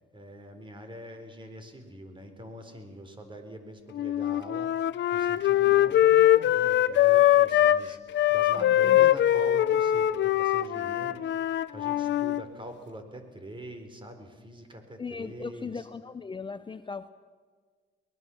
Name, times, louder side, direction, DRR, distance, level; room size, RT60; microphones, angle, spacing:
voice 1, 0.1-15.9, right 1 dB, 25° right, 7 dB, 4.2 m, -44 dB
Wind instrument woodwind instrument, 4.0-7.8 8.1-12.4, left 12 dB, 65° left, 0.7 m, -22 dB
voice 2, 8.5-9.1 15.0-17.1, left 5 dB, 25° left, 11 dB, 0.8 m, -38 dB
23.0 x 20.5 x 7.2 m, 1.6 s
cardioid pair, 90°, 20 cm